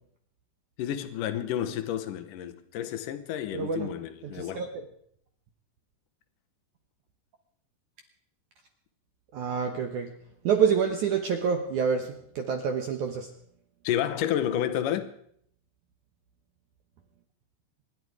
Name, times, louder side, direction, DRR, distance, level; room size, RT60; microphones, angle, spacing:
voice 1, 0.8-4.6 13.8-15.1, left 10 dB, 75° left, 2.0 m, -30 dB
voice 2, 3.5-3.9 4.2-4.8 9.3-10.1 10.4-13.3, right 6 dB, 75° right, 1.8 m, -27 dB
25.5 x 11.0 x 4.8 m
omnidirectional pair, 5.1 m